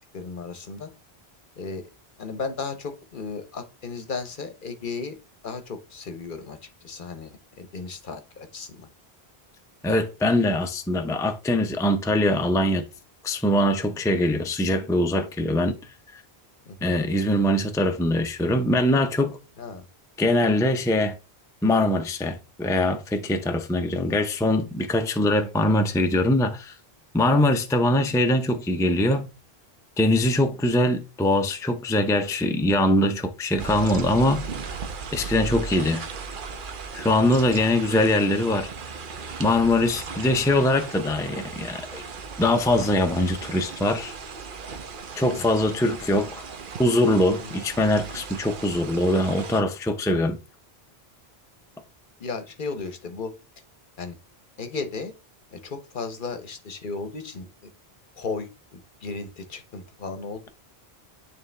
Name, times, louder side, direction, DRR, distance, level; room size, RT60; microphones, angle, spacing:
voice 1, 0.1-0.9 1.6-1.9 2.2-5.2 5.4-6.6 6.8-8.9 16.7-16.9 19.6-19.8 23.9-24.2 35.3-36.0 45.3-45.5 47.4-47.6 52.2-53.3 54.0-54.2 54.6-55.1 55.5-57.7 58.2-60.5, left 4 dB, 55° left, 0.9 m, -35 dB
voice 2, 9.8-12.9 13.2-15.8 16.1-16.2 16.8-19.4 20.2-21.2 21.6-26.8 27.1-29.3 30.0-34.5 35.1-36.0 36.9-38.7 39.4-42.0 42.4-44.1 45.2-46.4 46.8-50.4, left 1 dB, 5° left, 0.5 m, -22 dB
sound 1, 33.6-49.6, right 5 dB, 60° right, 0.9 m, -37 dB
9.5 x 3.3 x 3.3 m
omnidirectional pair, 1.0 m